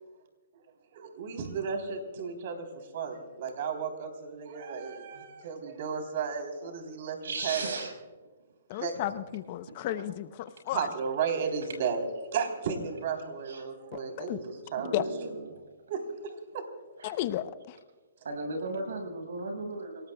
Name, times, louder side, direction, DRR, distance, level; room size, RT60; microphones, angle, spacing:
voice 1, 0.9-7.9 8.8-8.9 10.7-12.0 12.3-14.9 15.9-16.6, right 6 dB, 50° right, 5 dB, 3.5 m, -34 dB
voice 2, 7.2-8.0 8.7-8.8 9.7-9.9 13.4-13.6 14.8-15.6 17.0-17.1 18.2-20.1, right 2 dB, 85° right, 3 dB, 6.0 m, -36 dB
voice 3, 8.7-10.9 14.2-14.4 14.9-15.0 17.0-17.8, left 13 dB, 40° left, 13 dB, 0.7 m, -33 dB
29.0 x 18.5 x 2.3 m, 1.3 s
hypercardioid pair, 155°, 0 cm